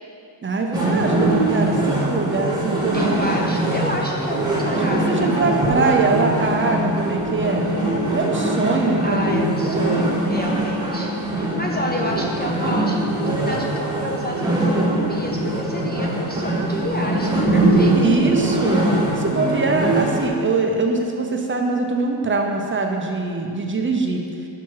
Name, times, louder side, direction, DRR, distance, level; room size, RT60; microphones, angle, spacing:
voice 1, 0.4-3.5 4.6-7.7 8.1-10.0 18.0-18.8 19.1-24.2, right 3 dB, 25° right, 2 dB, 0.5 m, -23 dB
sound 1, 0.7-20.3, right 2 dB, 10° right, 1.2 m, -22 dB
voice 2, 2.9-5.2 9.0-18.1, left 1 dB, 25° left, -1 dB, 0.4 m, -29 dB
6.0 x 5.9 x 4.6 m, 2.4 s
wide cardioid pair, 145°, 46 cm